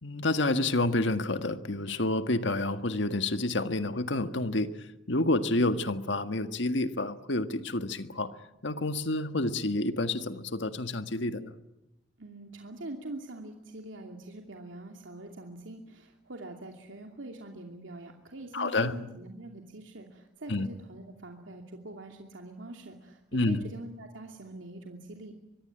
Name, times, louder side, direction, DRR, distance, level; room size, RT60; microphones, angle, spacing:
voice 1, 0.0-4.7 5.1-8.3 8.6-11.5 18.5-18.9 20.5-20.7 23.3-23.6, left 2 dB, 65° left, 9 dB, 1.7 m, -29 dB
voice 2, 12.2-25.3, right 2 dB, 85° right, 2 dB, 2.7 m, -44 dB
24.5 x 22.5 x 9.0 m, 0.92 s
head